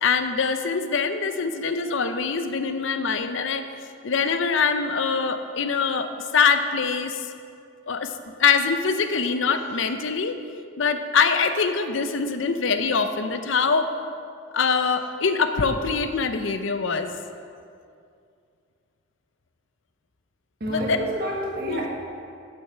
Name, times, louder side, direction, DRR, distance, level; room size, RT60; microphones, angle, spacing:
voice 1, 0.0-3.6 4.0-7.3 7.9-8.1 8.4-10.4 10.8-13.9 14.5-17.1 20.7-21.0 21.6-21.9, left 5 dB, 75° left, 9 dB, 0.6 m, -23 dB
voice 2, 20.6-21.9, right 1 dB, 50° right, -2 dB, 1.5 m, -29 dB
8.7 x 7.1 x 5.5 m, 2.4 s
head